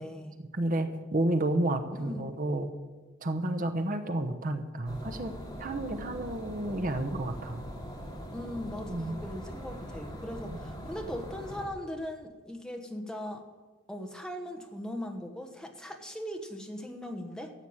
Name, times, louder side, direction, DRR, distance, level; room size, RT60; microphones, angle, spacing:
voice 1, 0.0-0.4 1.9-2.3 8.3-13.4 13.9-17.5, left 1 dB, 5° left, 4 dB, 1.2 m, -39 dB
voice 2, 0.6-2.7 3.2-5.3 5.6-7.6 8.8-9.2 10.5-10.6, right 1 dB, 45° right, 6 dB, 1.0 m, -31 dB
sound 1, 4.9-11.7, equal, 20° left, 2.9 m, -42 dB
14.5 x 7.9 x 8.8 m, 1.3 s
head